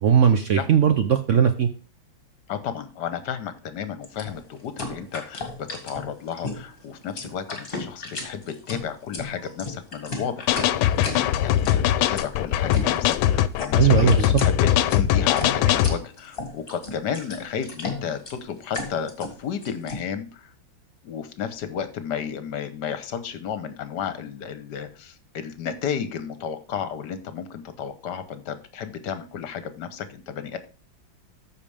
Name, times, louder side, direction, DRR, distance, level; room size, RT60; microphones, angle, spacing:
voice 1, 0.0-1.7 13.8-14.3, right 8 dB, 75° right, 8 dB, 0.7 m, -18 dB
voice 2, 2.5-10.9 11.3-20.5 21.0-30.6, left 7 dB, 60° left, 11 dB, 1.5 m, -33 dB
sound 1, 4.0-20.0, left 3 dB, 30° left, 2.0 m, -35 dB
sound 2, 10.5-16.0, left 11 dB, 85° left, 1.4 m, -21 dB
14.0 x 5.0 x 3.4 m, 0.35 s
omnidirectional pair, 2.2 m